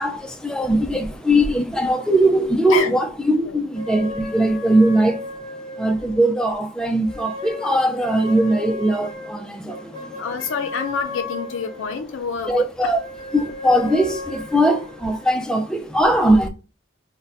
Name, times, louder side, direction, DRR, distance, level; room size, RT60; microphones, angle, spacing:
voice 1, 0.0-5.2 5.8-10.2 12.5-13.0 13.3-16.5, right 1 dB, 5° left, 0.3 m, -20 dB
sound 1, 3.7-6.5 7.0-12.2 12.8-15.3, left 3 dB, 20° left, 1.0 m, -35 dB
voice 2, 10.2-12.9, left 6 dB, 85° left, 0.4 m, -27 dB
2.5 x 2.1 x 3.9 m
head